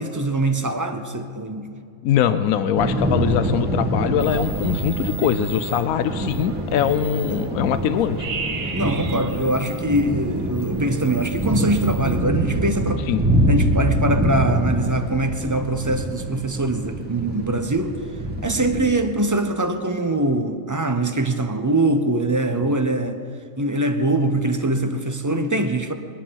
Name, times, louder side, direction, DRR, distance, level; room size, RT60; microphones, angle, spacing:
voice 1, 0.0-1.7 7.3-7.4 8.7-13.1 13.5-18.0 18.4-23.2 23.6-25.9, right 2 dB, 25° right, 7 dB, 0.4 m, -23 dB
voice 2, 2.0-8.3 13.1-13.2 22.5-22.7, left 9 dB, 80° left, 11 dB, 1.1 m, -22 dB
Thunder / Rain, 2.8-18.9, right 1 dB, 5° right, 1.3 m, -25 dB
sound 1, 4.2-12.2, right 4 dB, 70° right, 1.3 m, -36 dB
22.0 x 9.9 x 5.8 m, 2.3 s
omnidirectional pair, 1.5 m